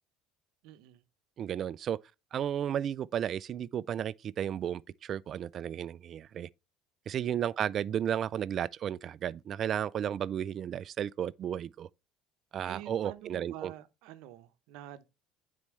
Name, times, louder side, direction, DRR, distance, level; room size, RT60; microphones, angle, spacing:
voice 1, 0.6-1.0 7.1-7.6 12.7-15.0, right 13 dB, 80° right, 0.7 m, -48 dB
voice 2, 1.4-2.0 2.3-6.5 7.1-11.9 12.5-13.7, right 9 dB, 50° right, 0.3 m, -33 dB
9.7 x 4.3 x 3.1 m
supercardioid pair, 95°, 0 cm